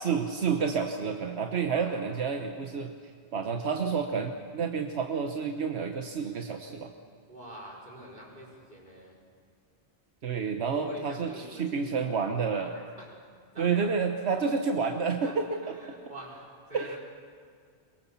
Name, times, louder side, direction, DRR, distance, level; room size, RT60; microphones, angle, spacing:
voice 1, 0.0-2.9 3.3-6.9 10.2-12.7 13.6-15.7 16.7-17.0, right 5 dB, 85° right, 4 dB, 1.3 m, -29 dB
voice 2, 1.7-2.2 7.3-9.1 10.7-13.1 13.5-13.9 15.2-17.0, right 1 dB, 45° right, -2 dB, 5.5 m, -46 dB
23.0 x 22.0 x 7.2 m, 2.1 s
omnidirectional pair, 1.1 m